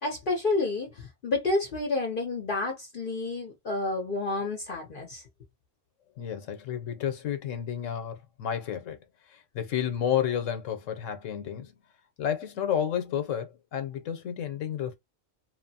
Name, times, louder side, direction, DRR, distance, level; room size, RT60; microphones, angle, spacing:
voice 1, 0.0-5.2, left 2 dB, 50° left, 0.8 m, -30 dB
voice 2, 6.2-9.0 9.3-11.8 12.2-14.9, left 9 dB, 90° left, 1.1 m, -31 dB
2.9 x 2.0 x 2.7 m
omnidirectional pair, 1.3 m